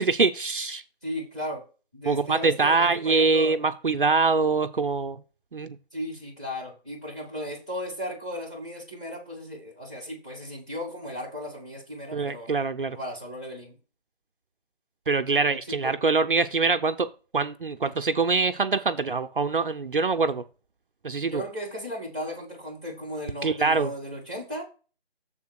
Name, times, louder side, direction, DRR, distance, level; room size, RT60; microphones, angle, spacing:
voice 1, 0.0-0.8 2.0-5.2 5.5-5.8 12.1-13.0 15.1-20.4 21.0-21.4 23.4-23.9, right 4 dB, 55° right, 9 dB, 0.6 m, -24 dB
voice 2, 1.0-1.6 1.9-3.6 5.9-12.5 12.9-13.8 15.7-15.9 21.3-24.6, left 1 dB, 5° left, -3 dB, 0.9 m, -36 dB
7.1 x 3.9 x 6.2 m, 0.35 s
figure-of-eight pair, 160°, 31 cm